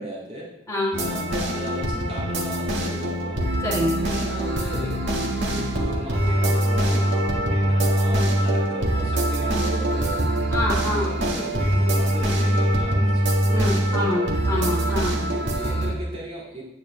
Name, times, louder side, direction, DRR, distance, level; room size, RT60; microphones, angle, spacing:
voice 1, 0.0-0.5 1.0-3.4 4.0-10.2 10.7-13.3 13.9-14.3 15.3-16.6, right 1 dB, 30° right, -6 dB, 2.2 m, -36 dB
voice 2, 0.7-1.0 3.6-4.0 10.5-11.1 13.5-15.2, left 1 dB, 20° left, -5 dB, 3.2 m, -26 dB
sound 1, 0.9-15.9, right 1 dB, 65° right, 1.8 m, -23 dB
9.6 x 9.2 x 3.2 m, 0.90 s
head